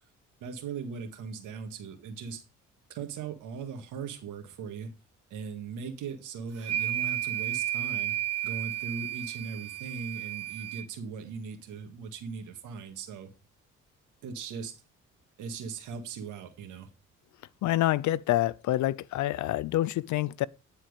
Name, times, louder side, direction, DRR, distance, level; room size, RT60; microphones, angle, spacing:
voice 1, 0.4-2.4 2.9-4.9 5.3-8.2 8.4-13.3 14.2-14.8 15.4-16.9, right 5 dB, 90° right, 1.9 m, -39 dB
sound 1, 6.6-10.8, right 13 dB, 55° right, 0.8 m, -32 dB
voice 2, 17.6-20.5, left 15 dB, 70° left, 0.5 m, -27 dB
10.0 x 4.5 x 5.1 m
cardioid pair, 90°, 30 cm